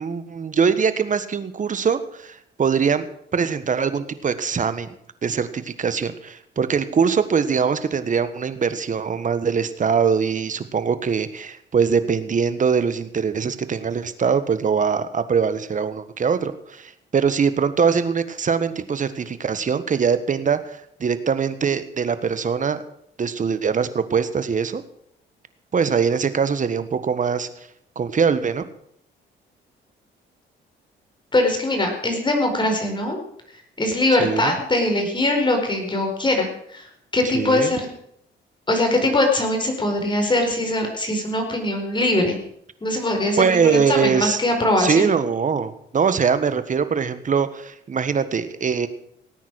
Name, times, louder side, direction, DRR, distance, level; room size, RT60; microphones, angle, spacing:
voice 1, 0.0-3.1 3.3-4.9 5.2-22.8 23.2-24.8 25.7-27.5 27.9-28.7 34.2-34.5 37.3-37.7 43.4-44.4 44.8-48.9, right 6 dB, 40° right, 12 dB, 1.5 m, -22 dB
voice 2, 31.3-33.2 33.8-37.9 38.7-42.4 42.8-45.1, left 1 dB, 25° left, 3 dB, 4.9 m, -22 dB
18.5 x 9.3 x 6.4 m, 0.70 s
cardioid pair, 90°, 20 cm